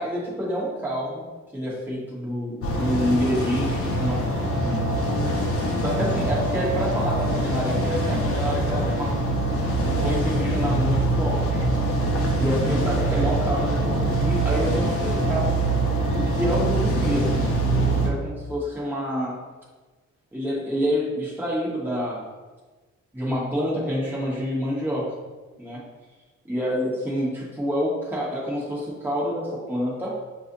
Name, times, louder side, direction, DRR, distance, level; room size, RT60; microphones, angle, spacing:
voice 1, 0.0-4.8 5.4-9.2 9.8-11.7 12.4-15.5 16.1-19.4 20.3-22.3 23.1-25.1 25.6-25.8 26.5-30.2, equal, 5° right, -7 dB, 1.3 m, -28 dB
sound 1, 2.6-18.1, right 1 dB, 50° left, 0.8 m, -24 dB
6.0 x 2.6 x 2.7 m, 1.3 s
cardioid pair, 90°, 30 cm